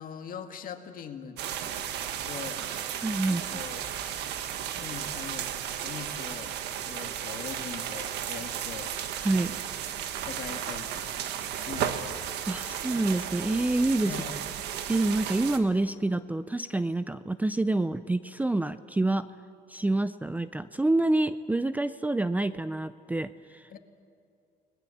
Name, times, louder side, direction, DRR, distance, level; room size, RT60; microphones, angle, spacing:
voice 1, 0.0-1.4 2.2-2.7 3.3-4.3 4.7-5.5 5.8-6.5 6.8-9.0 10.3-12.3 14.0-14.4 23.7-23.8, left 7 dB, 55° left, 6 dB, 2.1 m, -42 dB
sound 1, 1.4-15.6, right 10 dB, 80° right, 1.5 m, -34 dB
voice 2, 3.0-3.4 9.2-9.5 12.5-14.2 14.9-19.3 19.7-23.7, right 2 dB, 10° right, 13 dB, 0.6 m, -27 dB
29.5 x 20.5 x 7.2 m, 2.5 s
cardioid pair, 110°, 17 cm